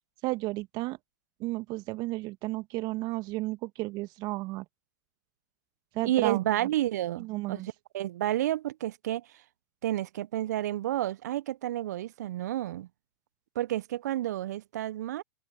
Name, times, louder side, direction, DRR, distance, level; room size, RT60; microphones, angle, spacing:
voice 1, 0.2-1.0 1.4-4.7 5.9-6.4 7.2-7.7, right 20 dB, 45° right, 1.9 m, -33 dB
voice 2, 6.0-9.3 9.8-12.9 13.6-15.2, right 13 dB, 70° right, 0.6 m, -30 dB
hypercardioid pair, 95°, 9 cm